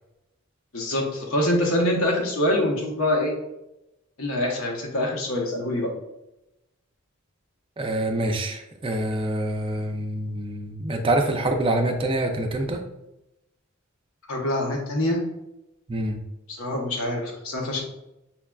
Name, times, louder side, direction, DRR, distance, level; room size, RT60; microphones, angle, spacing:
voice 1, 0.7-3.3 4.2-5.9 14.3-15.2 16.5-17.8, left 1 dB, 80° left, 0 dB, 0.9 m, -25 dB
voice 2, 7.8-12.8 15.9-16.2, right 1 dB, 25° right, 4 dB, 0.4 m, -26 dB
5.6 x 2.3 x 2.2 m, 0.89 s
head